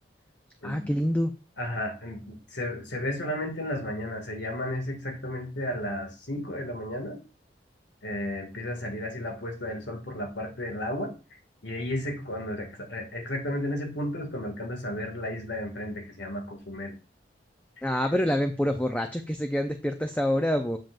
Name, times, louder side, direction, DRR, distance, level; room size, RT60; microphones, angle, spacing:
voice 1, 0.6-1.3 17.8-20.8, equal, 10° left, 6 dB, 0.5 m, -26 dB
voice 2, 1.6-7.2 8.0-11.1 11.6-16.9, left 1 dB, 75° left, 3 dB, 2.1 m, -33 dB
7.6 x 7.4 x 2.5 m, 0.32 s
head